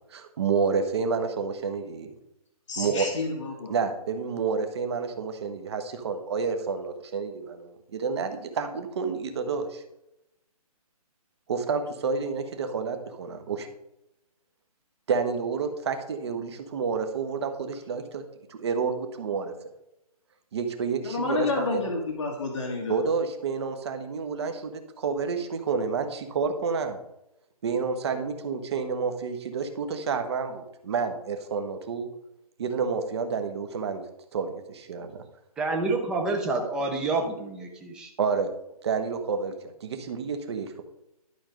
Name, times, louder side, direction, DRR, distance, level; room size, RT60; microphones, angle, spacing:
voice 1, 0.1-2.1 2.8-3.1 3.7-9.8 11.5-13.7 15.1-18.2 18.5-19.5 20.5-21.8 22.9-27.0 27.6-32.1 32.6-34.0 34.3-35.2 38.2-38.5 38.8-40.8, right 5 dB, 45° right, 7 dB, 1.2 m, -29 dB
voice 2, 2.7-3.7 21.0-23.0, left 3 dB, 50° left, 1 dB, 1.6 m, -30 dB
voice 3, 35.6-38.1, right 3 dB, 5° right, 1 dB, 0.6 m, -28 dB
11.5 x 4.6 x 5.2 m, 0.86 s
hypercardioid pair, 165°, 20 cm